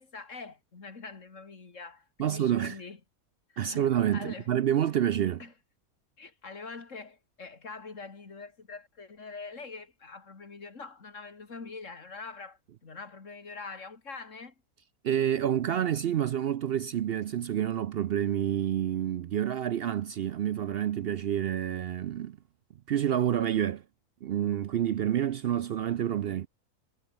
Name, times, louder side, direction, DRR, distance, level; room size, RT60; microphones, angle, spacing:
voice 1, 0.0-3.0 3.5-3.8 4.1-4.5 5.4-5.5 6.2-14.5, left 4 dB, 60° left, 2.7 m, -44 dB
voice 2, 2.2-2.8 3.6-5.4 15.0-22.4 22.9-23.8 24.2-26.5, right 10 dB, 65° right, 0.6 m, -28 dB
omnidirectional pair, 1.5 m